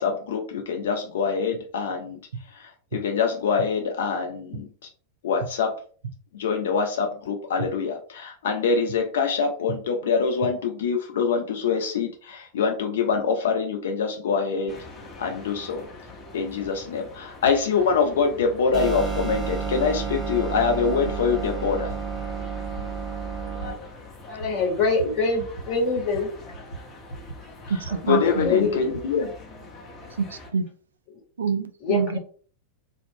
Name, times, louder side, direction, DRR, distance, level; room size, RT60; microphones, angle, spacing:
voice 1, 0.0-2.2 2.5-4.7 5.2-5.7 6.3-14.8 15.2-15.9 16.3-21.9 28.0-29.3, left 5 dB, 60° left, 3 dB, 0.4 m, -25 dB
sound 1, 14.7-30.5, left 2 dB, 25° left, 0.8 m, -44 dB
sound 2, 17.4-17.6 18.4-18.5 19.3-19.4 20.1-20.2 21.1-21.2 21.9-22.0 22.8-22.9 23.6-23.7 24.4-24.5 24.8-25.1 25.4-25.7 25.9-26.2 26.5-27.4 27.7-29.1, right 3 dB, 85° left, 0.8 m, -39 dB
sound 3, 18.7-23.7, right 6 dB, 15° right, 0.8 m, -30 dB
voice 2, 24.3-26.3 28.1-29.0 31.8-32.2, left 4 dB, 45° left, -1 dB, 1.2 m, -24 dB
voice 3, 27.7-28.7 30.2-30.6 31.4-32.2, right 5 dB, 70° right, 9 dB, 0.3 m, -27 dB
2.3 x 2.0 x 3.6 m, 0.42 s
figure-of-eight pair, 90°, 0 cm